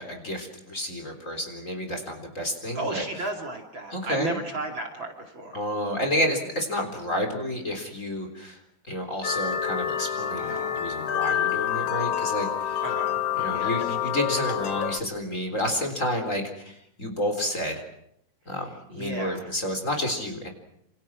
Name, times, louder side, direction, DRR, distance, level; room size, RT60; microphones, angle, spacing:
voice 1, 0.0-3.3 3.9-4.4 5.5-8.6 8.9-12.8 13.3-17.8 18.5-20.5, left 1 dB, 25° left, 4 dB, 4.2 m, -30 dB
voice 2, 2.7-5.6 10.4-10.7 12.8-13.2 13.5-13.7 18.9-19.5, right 2 dB, 40° right, 2 dB, 3.2 m, -33 dB
sound 1, 9.2-15.0, left 9 dB, 60° left, 2.0 m, -28 dB
28.0 x 28.0 x 6.2 m, 0.75 s
omnidirectional pair, 3.5 m